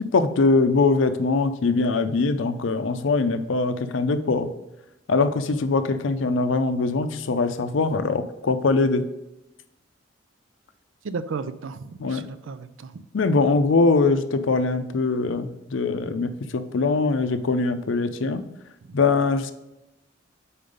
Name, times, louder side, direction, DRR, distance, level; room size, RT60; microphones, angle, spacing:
voice 1, 0.0-4.5 5.1-9.0 12.0-12.2 13.1-18.4 18.9-19.5, left 3 dB, 70° left, 10 dB, 0.5 m, -22 dB
voice 2, 11.0-13.0 18.9-19.0, right 4 dB, 75° right, 12 dB, 0.4 m, -34 dB
5.4 x 4.3 x 5.0 m, 0.94 s
head